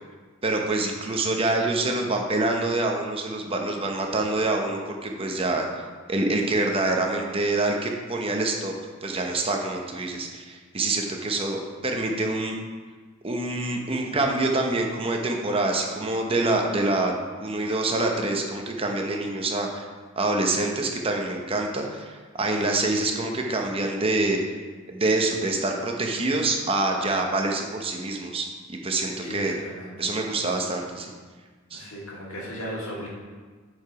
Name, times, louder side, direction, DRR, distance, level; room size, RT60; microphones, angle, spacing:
voice 1, 0.4-5.8 6.1-8.7 9.0-12.6 13.2-19.8 20.2-24.4 24.9-29.5 30.0-31.1 31.7-31.8, right 2 dB, 25° right, 2 dB, 0.8 m, -26 dB
voice 2, 29.2-30.1 31.7-33.1, equal, 75° left, -4 dB, 2.1 m, -36 dB
7.7 x 4.8 x 5.1 m, 1.4 s
head